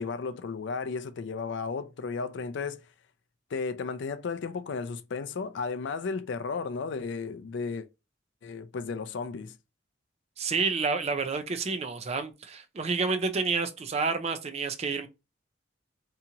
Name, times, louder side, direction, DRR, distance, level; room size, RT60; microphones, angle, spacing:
voice 1, 0.0-2.8 3.5-7.9 8.4-9.6, left 4 dB, 60° left, 0.4 m, -34 dB
voice 2, 10.4-15.1, right 4 dB, 30° right, 0.4 m, -29 dB
2.8 x 2.4 x 2.8 m
head